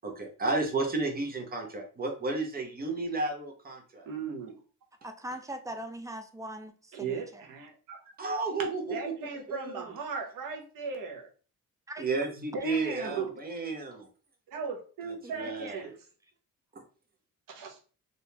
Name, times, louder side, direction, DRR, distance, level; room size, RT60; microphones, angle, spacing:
voice 1, 0.0-4.1 8.2-9.1 9.5-9.9 12.0-14.1 15.1-15.9, right 3 dB, 25° right, 0.8 m, -32 dB
voice 2, 4.0-4.6 6.9-8.0 8.9-11.3 12.5-13.3 14.5-15.9 17.5-17.8, right 5 dB, 75° right, 0.9 m, -37 dB
voice 3, 5.0-7.4 11.9-12.1 15.2-15.5, right 1 dB, 10° right, 0.3 m, -41 dB
3.5 x 2.6 x 2.8 m
cardioid pair, 125°, 34 cm